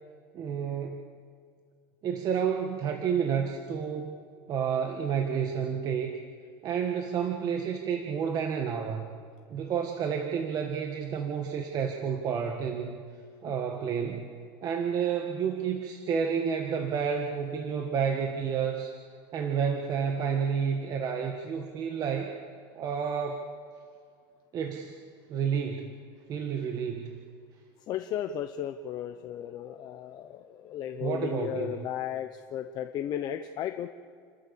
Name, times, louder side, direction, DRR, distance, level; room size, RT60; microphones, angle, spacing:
voice 1, 0.3-1.1 2.0-4.2 4.5-6.2 6.6-9.1 9.5-13.0 13.4-14.3 14.6-18.9 19.3-22.4 22.7-23.4 24.5-25.0 25.3-25.9 26.3-27.2 31.0-31.9, right 7 dB, 35° right, 4 dB, 1.6 m, -30 dB
voice 2, 27.9-33.9, left 10 dB, 40° left, 7 dB, 0.9 m, -35 dB
30.0 x 13.5 x 7.0 m, 2.1 s
cardioid pair, 150°, 11 cm